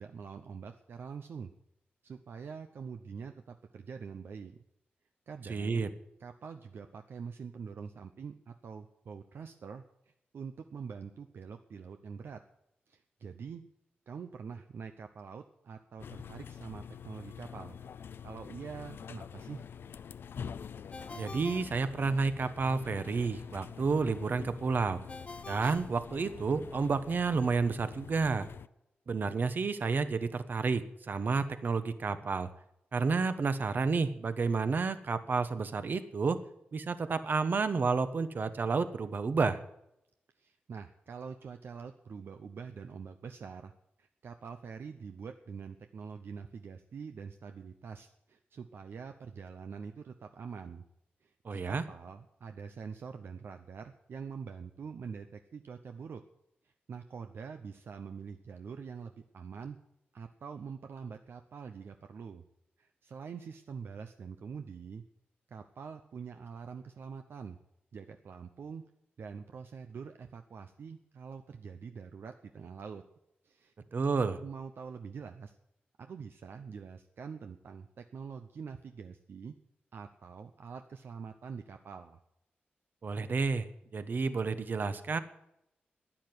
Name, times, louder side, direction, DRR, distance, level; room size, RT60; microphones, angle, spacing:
voice 1, 0.0-1.5 2.0-4.6 5.3-5.8 6.2-9.8 10.3-12.4 12.9-13.6 14.1-17.8 18.2-19.6 40.4-43.7 44.0-50.8 51.2-56.2 56.6-59.8 60.1-62.4 62.8-65.0 65.5-67.6 67.9-68.8 69.2-73.0 73.4-73.7 74.4-75.6 76.0-79.5 79.9-82.2, right 6 dB, 70° right, 7 dB, 0.8 m, -45 dB
voice 2, 5.5-5.9 21.1-25.0 25.5-28.5 29.1-32.5 32.9-36.4 36.7-39.6 51.4-51.8 73.9-74.4 83.0-83.7 83.9-85.2, right 4 dB, 55° right, 11 dB, 1.1 m, -30 dB
sound 1, 16.0-28.7, left 7 dB, 75° left, 0.5 m, -46 dB
Ringtone, 20.9-22.6 25.1-26.8, left 3 dB, 30° left, 0.7 m, -47 dB
11.5 x 9.9 x 9.4 m, 0.81 s
wide cardioid pair, 90°, 4 cm